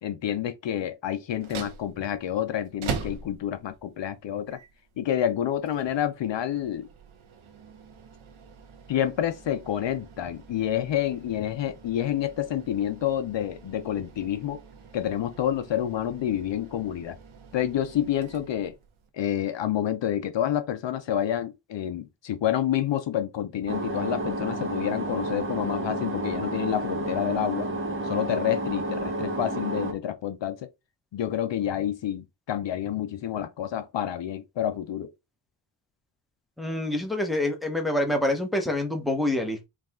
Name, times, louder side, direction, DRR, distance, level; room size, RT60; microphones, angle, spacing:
voice 1, 0.0-4.6 5.0-6.9 8.9-14.6 14.9-17.2 17.5-18.8 19.1-27.7 28.0-30.7 31.1-35.1, left 10 dB, 60° left, 0.6 m, -28 dB
sound 1, 1.3-19.1, right 6 dB, 75° right, 1.0 m, -43 dB
sound 2, 23.7-29.9, right 2 dB, 25° right, 1.0 m, -31 dB
voice 2, 36.6-39.7, left 1 dB, ahead, 1.0 m, -26 dB
4.8 x 2.4 x 3.6 m
wide cardioid pair, 130°, 50 cm